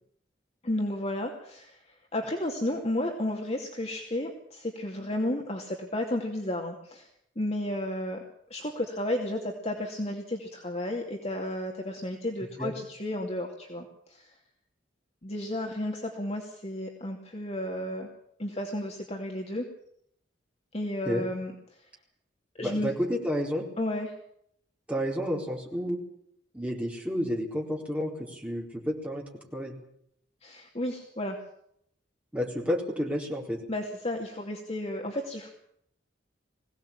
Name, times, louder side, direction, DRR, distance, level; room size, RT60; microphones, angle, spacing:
voice 1, 0.6-1.8 2.1-7.1 7.4-8.2 8.5-14.3 15.2-18.1 18.4-19.6 20.7-21.5 22.6-22.9 23.8-24.1 30.4-31.4 33.7-35.5, left 1 dB, 35° left, 1 dB, 2.6 m, -32 dB
voice 2, 22.6-23.7 24.9-26.0 26.5-29.2 29.5-29.8 32.3-33.6, equal, 5° right, -1 dB, 4.3 m, -30 dB
22.0 x 17.0 x 8.9 m, 0.71 s
head